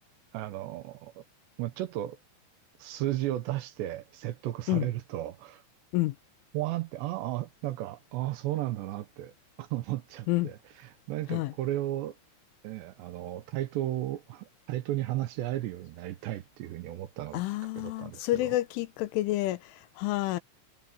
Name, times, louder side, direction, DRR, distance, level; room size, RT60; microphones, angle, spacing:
voice 1, 0.3-1.2 1.6-2.2 2.8-5.6 6.5-9.3 9.6-12.1 12.6-17.4 17.8-18.6, right 14 dB, 75° right, 3.0 m, -34 dB
voice 2, 17.3-20.4, left 17 dB, 85° left, 3.5 m, -29 dB
omnidirectional pair, 5.5 m